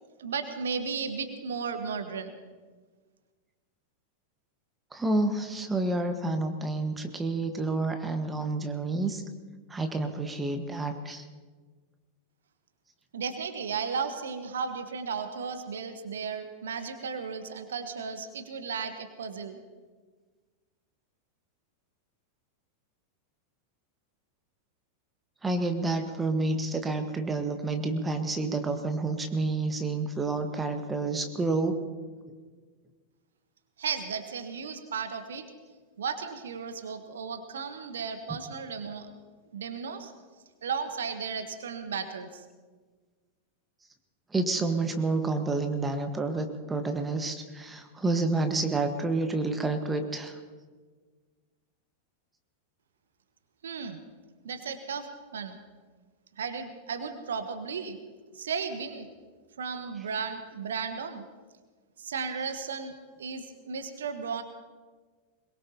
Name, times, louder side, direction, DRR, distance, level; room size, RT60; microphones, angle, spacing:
voice 1, 0.2-2.3 13.1-19.6 33.8-35.5 36.0-39.1 39.5-40.1 40.6-42.3 53.6-54.0 54.4-55.1 55.3-55.6 56.4-58.0 58.4-59.1 59.6-61.2 62.0-62.9 63.2-64.4, right 6 dB, 65° right, 9 dB, 1.3 m, -34 dB
voice 2, 4.9-9.2 9.7-11.2 25.4-31.7 38.3-38.4 44.3-50.4, right 3 dB, 15° right, 6 dB, 1.5 m, -29 dB
22.5 x 22.0 x 2.9 m, 1.4 s
figure-of-eight pair, 90°, 0 cm